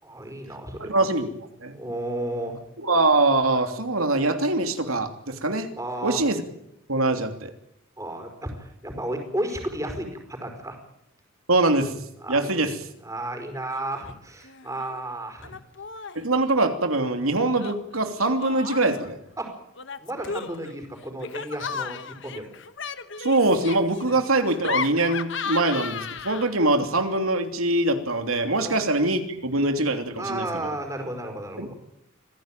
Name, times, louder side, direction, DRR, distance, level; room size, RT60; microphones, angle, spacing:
voice 1, 0.0-1.1 1.7-2.6 5.8-6.2 8.0-10.8 12.2-12.6 13.0-15.6 19.4-19.5 20.0-22.5 24.0-24.2 28.6-28.8 30.2-31.7, right 1 dB, 15° right, 4 dB, 5.0 m, -33 dB
voice 2, 0.8-1.3 1.6-1.7 2.8-5.7 6.0-6.4 6.9-7.5 11.5-11.9 12.3-12.7 16.1-19.2 23.2-30.5 31.6-31.7, right 2 dB, 90° right, 6 dB, 3.1 m, -23 dB
Laughter, 13.7-14.1 14.4-15.0 15.4-16.3 17.6-19.1 19.8-26.7, left 5 dB, 60° left, 1.2 m, -35 dB
26.0 x 16.5 x 9.1 m, 0.81 s
head